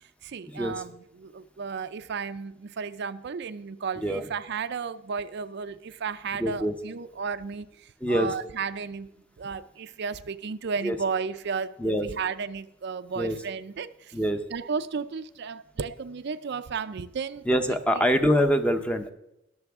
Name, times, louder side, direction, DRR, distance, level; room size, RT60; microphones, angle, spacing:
voice 1, 0.2-9.1 9.4-14.1 14.5-18.0, right 5 dB, 60° right, 0.5 m, -34 dB
voice 2, 6.4-6.7 8.0-8.3 10.8-11.0 11.8-12.1 13.2-13.4 14.1-14.4 17.5-19.1, equal, 5° left, 0.8 m, -24 dB
20.5 x 6.9 x 3.6 m
head